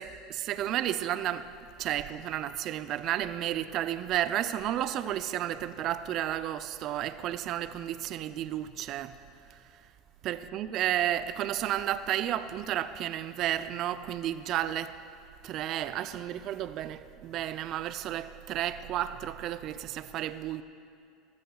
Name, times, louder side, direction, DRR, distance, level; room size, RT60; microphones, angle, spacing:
voice 1, 0.0-1.5 1.8-9.2 10.2-15.0 15.4-20.6, right 12 dB, 50° right, 12 dB, 0.5 m, -32 dB
20.0 x 14.5 x 2.4 m, 2.4 s
hypercardioid pair, 80°, 0 cm